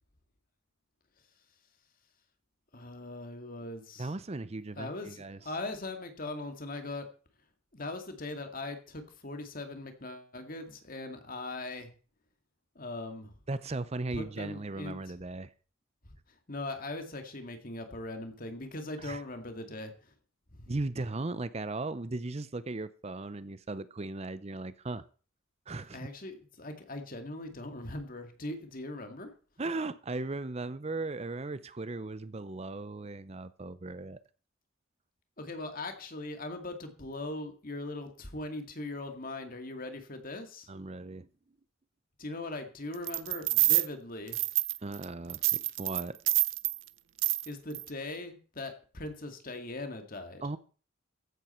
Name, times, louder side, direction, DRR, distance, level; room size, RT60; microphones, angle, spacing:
voice 1, 2.7-4.1 4.8-7.1 7.7-11.9 12.8-13.3 14.1-15.1 16.0-16.1 16.5-19.9 20.5-20.7 25.9-29.3 35.4-40.7 42.2-44.4 47.5-50.4, left 2 dB, 45° left, 2.2 m, -40 dB
voice 2, 4.0-5.4 13.5-15.5 19.0-19.2 20.7-25.0 25.7-26.1 29.6-34.2 40.7-41.3 44.8-46.2 50.4-50.6, right 2 dB, 30° right, 0.6 m, -37 dB
sound 1, 43.1-43.9 44.3-45.0 45.3-46.8 47.2-47.5 47.7-47.9, right 19 dB, 70° right, 0.6 m, -27 dB
15.0 x 11.0 x 4.4 m
head